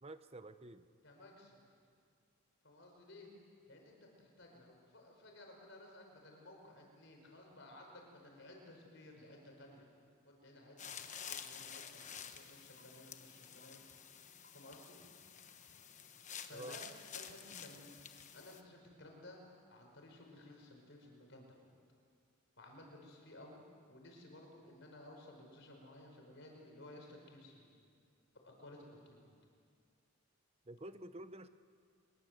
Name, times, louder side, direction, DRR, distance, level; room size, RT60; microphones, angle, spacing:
voice 1, 0.0-0.9 16.5-16.8 30.7-31.5, right 1 dB, 25° right, 11 dB, 0.7 m, -49 dB
voice 2, 1.0-1.6 2.6-3.3 3.7-9.9 10.2-13.8 14.5-15.0 16.4-16.8 17.1-17.9 18.3-21.7 22.6-23.6 23.9-27.7 28.4-29.3, left 1 dB, 55° left, 1 dB, 5.4 m, -56 dB
sound 1, 10.8-18.6, left 8 dB, 35° left, 1.2 m, -50 dB
24.5 x 21.5 x 8.0 m, 2.2 s
head